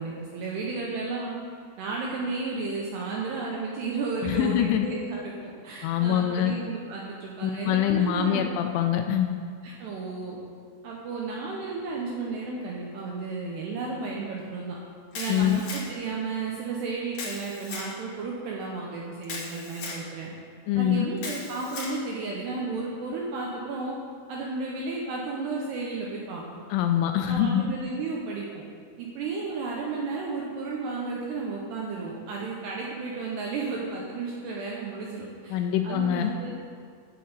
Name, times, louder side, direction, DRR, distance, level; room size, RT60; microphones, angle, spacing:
voice 1, 0.0-1.4 1.8-8.4 9.6-10.4 10.8-14.8 15.1-20.3 20.8-24.0 24.3-26.6 27.3-28.6 29.0-36.6, right 4 dB, 75° right, -2 dB, 2.5 m, -33 dB
voice 2, 4.2-4.9 5.8-6.5 7.4-9.3 15.3-15.6 20.7-21.1 26.7-27.7 35.5-36.3, left 10 dB, 85° left, 5 dB, 2.8 m, -24 dB
Camera, 15.1-16.1 17.1-17.9 19.2-20.0 21.2-22.0, left 4 dB, 50° left, 2.5 m, -37 dB
9.1 x 8.0 x 8.0 m, 2.1 s
omnidirectional pair, 6.0 m